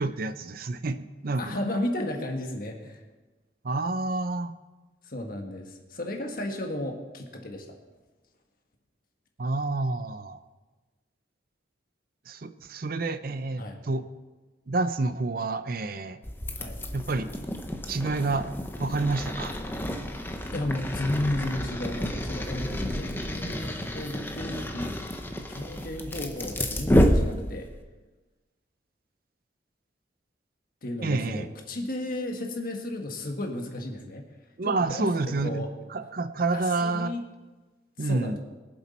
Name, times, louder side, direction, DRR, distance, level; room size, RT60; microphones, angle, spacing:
voice 1, 0.0-1.6 3.6-4.5 9.4-10.4 12.3-14.1 14.7-16.2 16.9-17.3 17.9-18.5 18.8-19.5 31.0-31.5 34.6-37.1 38.0-38.4, right 3 dB, 55° right, 11 dB, 0.6 m, -29 dB
voice 2, 1.4-3.0 5.1-7.8 13.6-13.8 16.5-16.8 20.5-27.7 30.8-34.2 34.6-35.1 35.4-35.7 36.5-37.2 38.0-38.4, left 1 dB, 50° left, 3 dB, 1.7 m, -33 dB
sound 1, 16.2-27.8, equal, 10° left, 0.8 m, -29 dB
21.5 x 7.5 x 4.3 m, 1.2 s
head